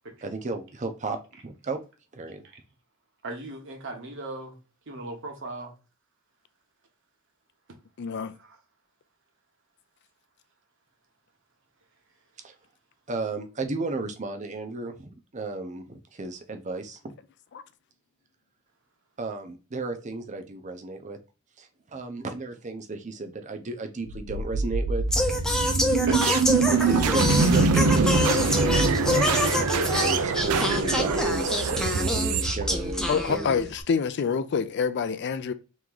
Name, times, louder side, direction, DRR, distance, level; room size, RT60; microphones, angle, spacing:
voice 1, 0.2-1.2 1.4-1.8 2.1-2.4 12.4-12.5 13.1-17.1 19.2-21.2 21.6-25.0 26.2-26.3 26.7-28.7 29.0-33.5, right 2 dB, 35° right, 0.6 m, -33 dB
voice 2, 3.2-4.5 4.9-5.7 25.6-25.8 26.1-26.2, right 2 dB, 60° right, 1.1 m, -36 dB
voice 3, 8.0-8.4 27.2-27.7 33.1-35.5, left 6 dB, 50° left, 0.4 m, -27 dB
sound 1, 24.1-33.2, right 4 dB, 90° right, 0.5 m, -24 dB
Singing, 25.1-33.8, left 1 dB, 5° left, 0.6 m, -27 dB
3.4 x 3.1 x 3.7 m
head